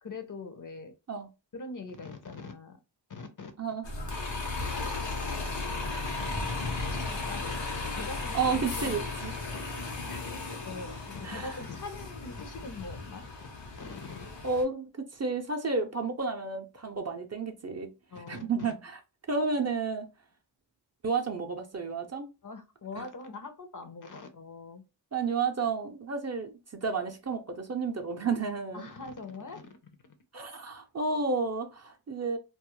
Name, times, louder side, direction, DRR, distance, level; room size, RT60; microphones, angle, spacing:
voice 1, 0.0-0.9 1.5-2.8 3.1-3.5 4.7-4.9 6.2-6.3 6.9-7.6 7.9-9.0 9.5-9.6 10.1-10.2 10.6-13.2 13.8-14.3 18.1-18.5 22.4-24.8 28.7-29.7, left 3 dB, 45° left, 0.6 m, -42 dB
Bus, 3.8-14.6, left 3 dB, 80° left, 0.8 m, -35 dB
voice 2, 8.3-9.3 11.2-11.6 14.4-19.0 19.3-20.1 21.0-22.3 23.0-23.1 25.1-28.9 30.3-32.4, right 4 dB, 35° right, 0.5 m, -31 dB
2.3 x 2.0 x 2.9 m
cardioid pair, 40°, 44 cm